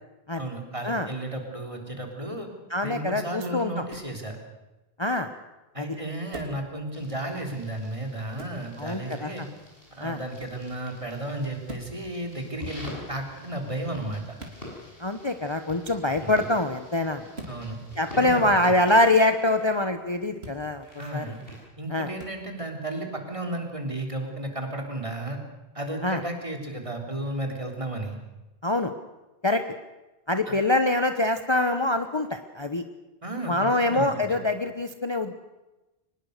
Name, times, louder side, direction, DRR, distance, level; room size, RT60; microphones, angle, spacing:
voice 1, 0.4-2.5 2.8-4.4 5.7-9.5 9.9-14.4 17.5-17.8 18.1-18.8 21.0-21.4 21.8-25.4 25.7-28.2 30.5-30.6 33.2-33.5 33.8-34.2, right 1 dB, 30° right, 3 dB, 3.6 m, -33 dB
voice 2, 2.7-3.8 5.0-5.3 5.8-5.9 8.8-9.3 10.0-10.2 15.0-17.3 18.0-20.8 21.1-21.2 21.9-22.1 26.0-26.2 28.6-28.9 29.4-29.6 30.3-32.8 33.5-35.3, left 2 dB, 25° left, 7 dB, 1.0 m, -24 dB
sound 1, 3.9-4.2 6.3-6.6 8.4-8.6 10.4-10.6 11.6-12.0 14.4-14.6 17.3-17.6 20.4-20.6 22.2-22.4, right 2 dB, 75° right, 3.5 m, -42 dB
sound 2, 6.9-21.6, left 1 dB, 60° left, 7.9 m, -47 dB
23.5 x 20.0 x 6.7 m, 1.0 s
omnidirectional pair, 1.1 m